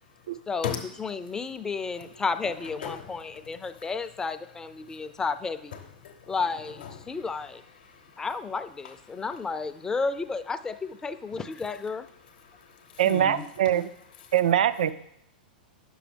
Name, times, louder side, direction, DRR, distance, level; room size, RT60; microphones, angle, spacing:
voice 1, 1.0-5.8 6.3-7.6 8.2-12.1, left 4 dB, 15° left, 11 dB, 0.4 m, -32 dB
voice 2, 2.4-3.9 4.8-5.2 5.7-6.4 6.6-7.4 7.7-8.3 8.8-9.2 12.2-13.7 14.2-14.3, left 8 dB, 65° left, 4 dB, 0.8 m, -40 dB
voice 3, 13.0-13.9 14.3-14.9, right 10 dB, 65° right, 14 dB, 0.3 m, -23 dB
9.9 x 6.2 x 3.3 m, 0.76 s
hypercardioid pair, 105°, 5 cm